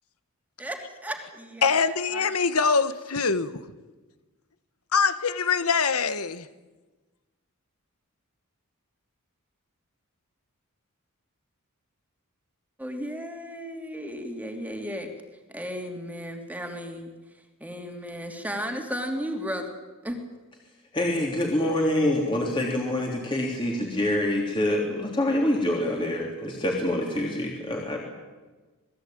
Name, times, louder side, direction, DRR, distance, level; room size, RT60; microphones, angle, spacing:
voice 1, 0.6-2.3 12.8-15.1 15.5-17.1 17.6-19.7 20.0-20.2, equal, 5° right, 2.9 m, -34 dB
voice 2, 1.6-3.6 4.9-6.5, left 5 dB, 75° left, 1.3 m, -24 dB
voice 3, 20.9-28.0, left 1 dB, 20° left, 3.3 m, -26 dB
27.5 x 20.0 x 9.1 m
head